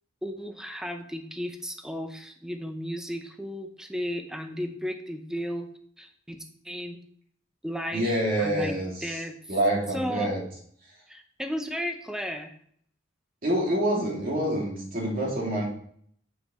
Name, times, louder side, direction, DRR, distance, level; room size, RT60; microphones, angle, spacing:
voice 1, 0.2-5.7 6.0-6.4 6.6-7.0 7.6-8.8 9.0-9.3 9.9-10.3 11.1-12.6, equal, 5° right, 6 dB, 0.7 m, -34 dB
voice 2, 7.9-9.2 9.5-10.4 13.4-15.7, right 1 dB, 50° right, -3 dB, 2.6 m, -26 dB
7.6 x 6.5 x 3.1 m, 0.62 s
head